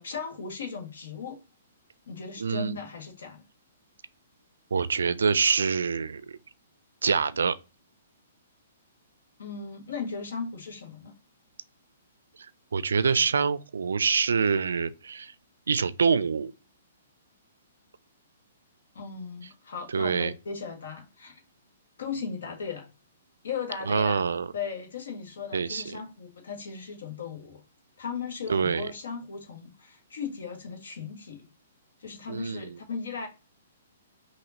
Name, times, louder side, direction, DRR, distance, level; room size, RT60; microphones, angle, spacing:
voice 1, 0.0-1.4 2.1-3.4 9.4-11.1 18.9-21.4 22.0-22.9 23.4-24.2 24.5-27.6 28.0-31.5 32.0-33.3, left 5 dB, 65° left, 1.7 m, -37 dB
voice 2, 2.4-2.8 4.7-6.4 7.0-7.6 12.7-15.3 15.7-16.5 19.9-20.3 23.9-24.5 25.5-25.8 28.5-28.9 32.3-32.7, right 5 dB, 70° right, 0.4 m, -25 dB
5.6 x 2.9 x 2.7 m
figure-of-eight pair, 120°, 0 cm